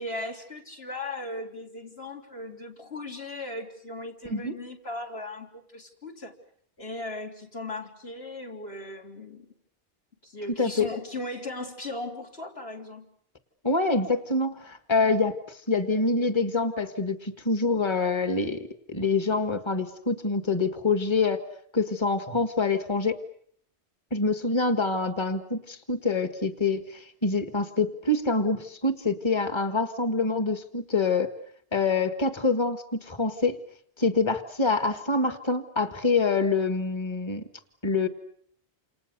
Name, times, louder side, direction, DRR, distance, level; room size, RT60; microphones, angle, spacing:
voice 1, 0.0-6.3 6.8-9.5 10.2-13.1, left 2 dB, 65° left, 1 dB, 4.1 m, -37 dB
voice 2, 10.6-10.9 13.6-21.4 21.7-23.2 24.1-31.3 31.7-33.6 34.0-37.4 37.8-38.1, left 3 dB, 25° left, 9 dB, 1.7 m, -26 dB
29.0 x 28.0 x 6.8 m, 0.65 s
omnidirectional pair, 1.1 m